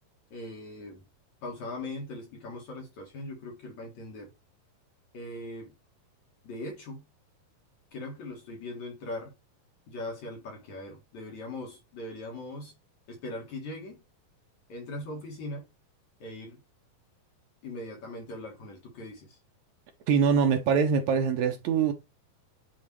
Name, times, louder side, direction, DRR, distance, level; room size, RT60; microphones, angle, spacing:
voice 1, 0.3-1.0 1.4-4.3 5.1-5.7 6.4-7.1 7.9-9.4 9.9-12.8 13.1-14.0 14.7-15.7 16.2-16.6 17.6-19.4, left 2 dB, 55° left, 2.6 m, -40 dB
voice 2, 20.1-21.9, right 6 dB, 75° right, 1.7 m, -23 dB
9.0 x 3.3 x 3.1 m
omnidirectional pair, 4.3 m